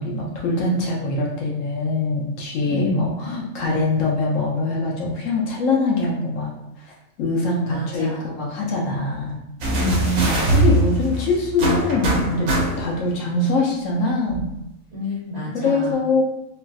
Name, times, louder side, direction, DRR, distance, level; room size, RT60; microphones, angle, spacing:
voice 1, 0.0-6.5 6.9-9.4 10.5-14.5 15.5-16.2, left 3 dB, 70° left, -2 dB, 0.9 m, -23 dB
voice 2, 2.6-3.1 7.7-8.3 9.7-10.5 14.9-16.0, right 2 dB, 35° right, -9 dB, 0.8 m, -27 dB
sound 1, 9.6-13.1 14.3-14.4, right 1 dB, 70° right, 1.1 m, -21 dB
3.3 x 2.4 x 2.3 m, 0.85 s
omnidirectional pair, 1.5 m